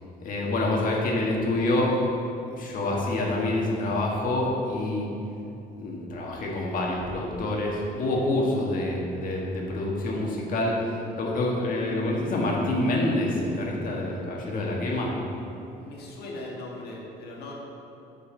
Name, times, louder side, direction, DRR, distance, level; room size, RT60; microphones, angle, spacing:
voice 1, 0.2-2.0 2.5-5.1 5.8-15.1, left 1 dB, 55° left, -2 dB, 1.5 m, -27 dB
voice 2, 7.9-8.2 15.8-17.5, left 2 dB, 70° left, -2 dB, 1.6 m, -40 dB
7.8 x 5.6 x 3.9 m, 2.9 s
cardioid pair, 110°, 17 cm